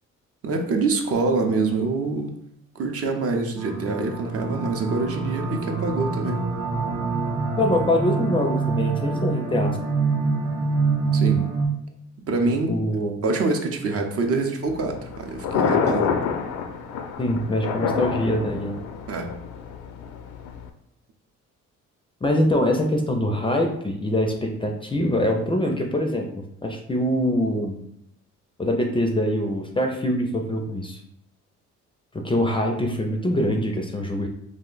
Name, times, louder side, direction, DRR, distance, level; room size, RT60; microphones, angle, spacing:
voice 1, 0.4-2.3 2.8-6.4 11.1-11.5 12.3-12.8 13.2-16.1 19.1-19.3, right 3 dB, 50° right, 4 dB, 0.6 m, -25 dB
sound 1, 3.6-11.7, right 4 dB, 75° right, 0.8 m, -25 dB
voice 2, 7.6-9.8 12.4-13.2 17.2-18.8 22.2-26.3 26.6-27.8 28.6-31.0 32.1-34.3, left 1 dB, 15° left, 2 dB, 0.4 m, -24 dB
Thunder, 14.7-20.7, left 6 dB, 80° left, 0.4 m, -28 dB
2.5 x 2.1 x 3.8 m, 0.75 s
cardioid pair, 90°, 30 cm